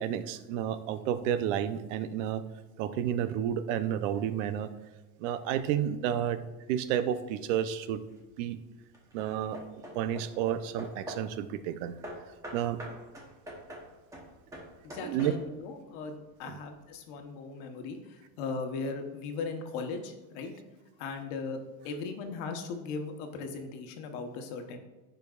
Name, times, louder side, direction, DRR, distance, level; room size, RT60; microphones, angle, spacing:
voice 1, 0.0-2.4 2.8-4.7 5.2-6.4 6.7-8.0 8.4-8.6 9.1-9.6 9.9-12.0 12.5-12.8 15.0-15.3 16.5-16.6, right 10 dB, 80° right, 12 dB, 0.7 m, -31 dB
Hammer / Wood, 7.8-8.3 8.9-11.4 12.0-15.7, equal, 10° right, 0.9 m, -45 dB
voice 2, 14.8-20.5 21.0-24.8, left 4 dB, 60° left, 5 dB, 1.1 m, -38 dB
14.0 x 5.1 x 2.4 m, 1.1 s
cardioid pair, 170°, 37 cm